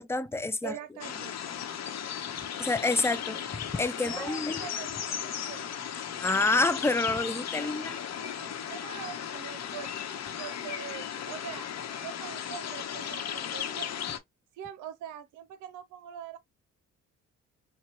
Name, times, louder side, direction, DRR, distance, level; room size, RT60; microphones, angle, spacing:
voice 1, 0.0-0.7 2.6-4.6 6.2-8.0, left 3 dB, 10° left, 0.4 m, -28 dB
voice 2, 0.6-1.4 4.0-5.7 7.6-7.9 8.1-10.0 10.4-11.7 12.0-13.9 14.5-16.4, right 9 dB, 80° right, 0.6 m, -43 dB
sound 1, 1.0-14.2, left 9 dB, 60° left, 0.9 m, -36 dB
4.4 x 2.2 x 2.8 m
cardioid pair, 90°, 30 cm